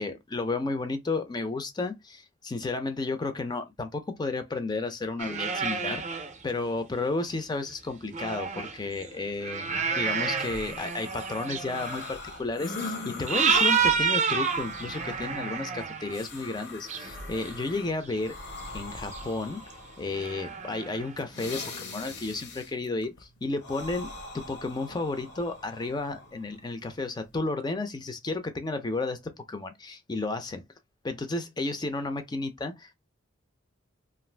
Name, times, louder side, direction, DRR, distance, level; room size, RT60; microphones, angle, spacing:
voice 1, 0.0-6.0 6.4-18.4 18.7-19.6 20.0-30.6 31.0-32.9, left 3 dB, 20° left, 0.4 m, -32 dB
sound 1, 5.2-6.3 7.0-7.1 8.0-12.1 12.8-12.9 13.3-16.2 16.9-18.3 18.7-18.8 19.1-19.2 19.7-19.8 20.1-21.1 22.2-22.3, right 5 dB, 35° right, 0.5 m, -29 dB
sound 2, 10.4-27.4, left 3 dB, 55° left, 0.7 m, -42 dB
2.5 x 2.4 x 3.2 m
head